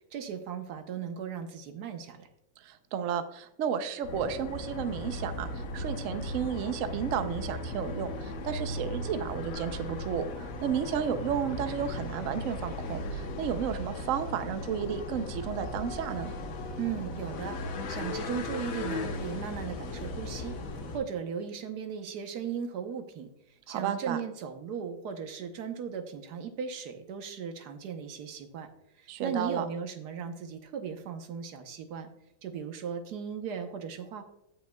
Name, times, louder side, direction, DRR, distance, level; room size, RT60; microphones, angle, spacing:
voice 1, 0.1-2.3 16.8-20.6 20.9-23.3 23.7-28.7 29.0-32.1 32.4-34.2, right 7 dB, 60° right, 7 dB, 1.3 m, -37 dB
voice 2, 2.6-16.3 23.7-24.2 29.1-29.7, right 8 dB, 85° right, 9 dB, 0.7 m, -32 dB
sound 1, 4.0-21.0, left 2 dB, 55° left, 1.0 m, -37 dB
16.5 x 5.5 x 2.2 m, 0.82 s
omnidirectional pair, 2.2 m